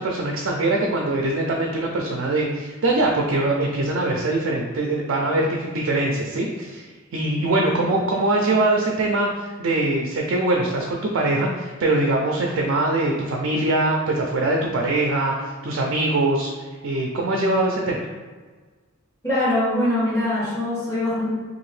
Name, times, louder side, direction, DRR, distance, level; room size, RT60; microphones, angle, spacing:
voice 1, 0.0-16.5 16.8-18.1, right 2 dB, 70° right, 0 dB, 0.4 m, -22 dB
voice 2, 19.2-21.3, left 1 dB, 15° left, -10 dB, 1.4 m, -23 dB
2.8 x 2.4 x 3.1 m, 1.4 s
head